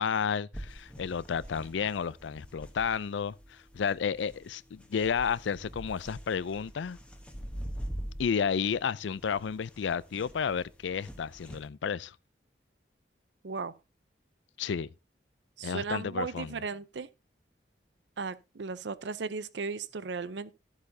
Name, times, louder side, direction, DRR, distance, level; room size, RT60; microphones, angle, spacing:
voice 1, 0.0-7.0 8.2-12.1 14.6-14.9 15.6-16.5, left 6 dB, 80° left, 0.4 m, -31 dB
sound 1, 0.5-11.7, equal, 5° left, 1.1 m, -44 dB
voice 2, 15.6-17.1 18.2-20.5, right 4 dB, 75° right, 0.6 m, -36 dB
13.0 x 8.1 x 2.7 m
head